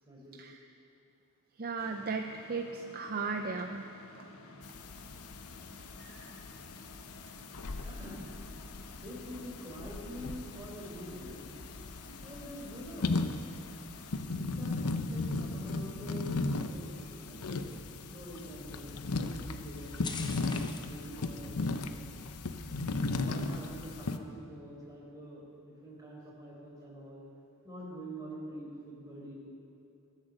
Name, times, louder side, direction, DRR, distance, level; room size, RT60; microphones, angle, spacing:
voice 1, 0.0-0.4 7.9-8.3 9.0-11.5 12.2-13.2 14.2-17.6 18.1-21.7 22.9-27.2 27.6-29.3, equal, 15° right, -4 dB, 4.1 m, -46 dB
voice 2, 1.6-3.9 4.1-4.2 6.0-6.4, right 4 dB, 40° right, 5 dB, 0.6 m, -37 dB
sound 1, 1.8-14.3, left 2 dB, 70° left, 1.2 m, -52 dB
sound 2, 4.6-24.2, left 3 dB, 85° left, 0.8 m, -37 dB
sound 3, 10.7-21.0, left 5 dB, 20° left, 0.7 m, -52 dB
22.5 x 8.3 x 6.6 m, 2.7 s
head